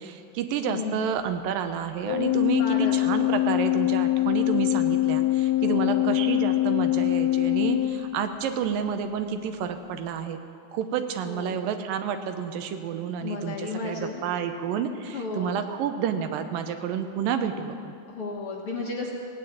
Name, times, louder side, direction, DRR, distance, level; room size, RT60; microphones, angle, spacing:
voice 1, 0.0-10.4 10.7-18.0, right 7 dB, 85° right, 8 dB, 2.6 m, -30 dB
voice 2, 0.7-1.0 2.6-3.0 5.6-6.0 11.2-11.6 13.2-14.2 15.1-15.6 18.1-19.1, left 4 dB, 55° left, -1 dB, 1.7 m, -33 dB
Organ, 2.1-8.6, left 16 dB, 75° left, 2.1 m, -24 dB
17.0 x 9.6 x 8.7 m, 2.4 s
omnidirectional pair, 3.9 m